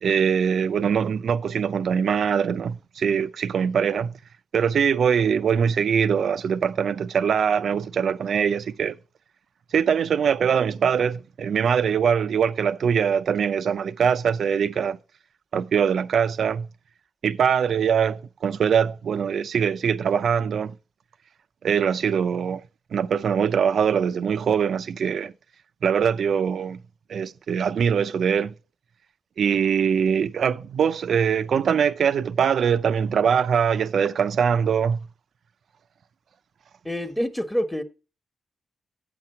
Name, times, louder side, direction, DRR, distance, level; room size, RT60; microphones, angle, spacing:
voice 1, 0.0-4.1 4.5-8.9 9.7-15.0 15.5-16.7 17.2-20.8 21.6-22.6 22.9-25.3 25.8-26.8 27.1-28.5 29.4-35.1, right 7 dB, 70° right, 0.5 m, -22 dB
voice 2, 36.8-37.8, equal, 5° left, 1.3 m, -26 dB
8.5 x 5.9 x 5.6 m
cardioid pair, 65°, 0 cm